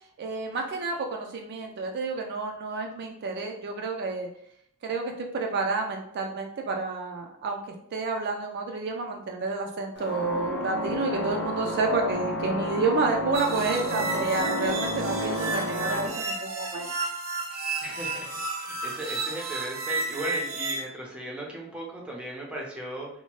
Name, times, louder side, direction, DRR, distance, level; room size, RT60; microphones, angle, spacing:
voice 1, 0.2-4.3 4.8-16.9, right 3 dB, 50° right, 2 dB, 0.4 m, -30 dB
sound 1, 10.0-16.1, left 1 dB, 55° left, 0.6 m, -31 dB
sound 2, 13.3-20.8, right 3 dB, 80° right, 0.8 m, -32 dB
voice 2, 17.8-23.1, right 1 dB, 5° right, -2 dB, 0.6 m, -37 dB
2.8 x 2.1 x 3.0 m, 0.70 s
head